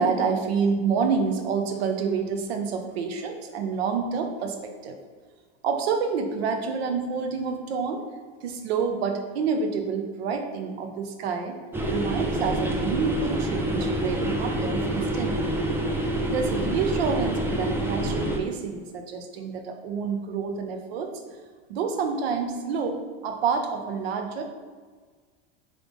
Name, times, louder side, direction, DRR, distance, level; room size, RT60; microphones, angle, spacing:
voice 1, 0.0-5.0 5.6-8.0 8.4-11.6 11.9-15.6 16.3-21.1 21.7-24.4, right 5 dB, 90° right, 5 dB, 0.6 m, -28 dB
sound 1, 11.7-18.4, right 1 dB, 10° right, 0.4 m, -27 dB
3.8 x 3.2 x 3.5 m, 1.5 s
supercardioid pair, 115°, 30 cm